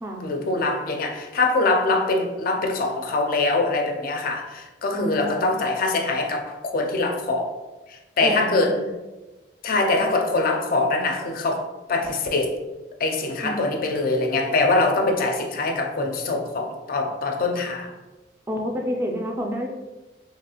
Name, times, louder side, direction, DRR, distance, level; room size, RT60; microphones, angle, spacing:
voice 1, 0.2-7.5 8.2-8.8 9.6-12.6 13.0-17.9, left 3 dB, 50° left, 0.4 m, -23 dB
voice 2, 4.9-5.4 8.2-8.9 13.4-13.6 18.5-19.7, equal, 15° right, 0.3 m, -29 dB
2.9 x 2.3 x 2.9 m
head